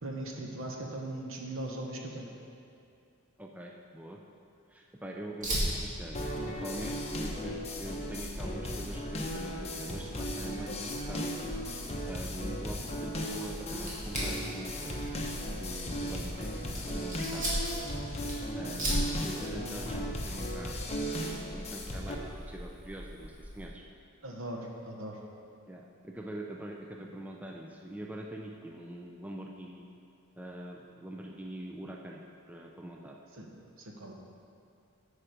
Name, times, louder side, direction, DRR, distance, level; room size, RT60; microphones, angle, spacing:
voice 1, 0.0-2.3 24.2-25.2 33.3-33.5 33.8-34.1, right 1 dB, 65° right, 1 dB, 1.0 m, -39 dB
voice 2, 3.4-4.2 4.7-6.2 6.5-11.4 12.1-15.2 15.5-17.5 18.6-20.7 21.2-23.8 25.7-29.9 30.4-32.2 32.5-33.2, right 1 dB, 5° right, 0 dB, 0.4 m, -43 dB
Fire, 5.4-23.7, equal, 35° right, 1.9 m, -39 dB
sound 1, 6.1-22.1, equal, 30° left, 0.8 m, -37 dB
8.8 x 5.0 x 5.1 m, 2.5 s
head